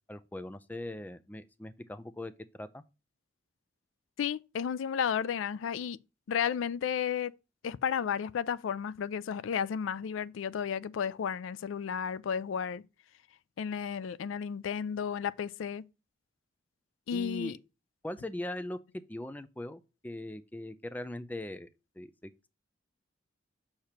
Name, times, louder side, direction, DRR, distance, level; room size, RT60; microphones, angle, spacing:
voice 1, 0.1-2.8 17.1-17.6 18.0-21.7 22.0-22.5, left 1 dB, 10° left, 0.4 m, -40 dB
voice 2, 4.2-6.0 6.3-7.3 7.6-12.8 13.6-15.8 17.1-17.5, left 7 dB, 85° left, 0.3 m, -33 dB
6.6 x 2.9 x 5.7 m
head